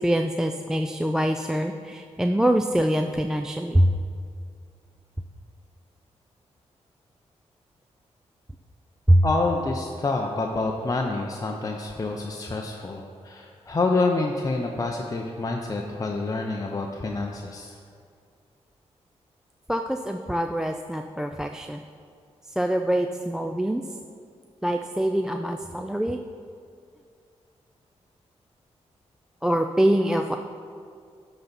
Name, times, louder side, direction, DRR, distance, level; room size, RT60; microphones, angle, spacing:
voice 1, 0.0-3.9 9.1-9.2 19.7-21.8 22.6-23.8 24.6-26.2 29.4-30.4, right 1 dB, 5° right, 6 dB, 0.3 m, -24 dB
voice 2, 9.2-17.8, left 3 dB, 30° left, 1 dB, 0.6 m, -27 dB
11.0 x 4.0 x 6.0 m, 2.3 s
cardioid pair, 80°, 12 cm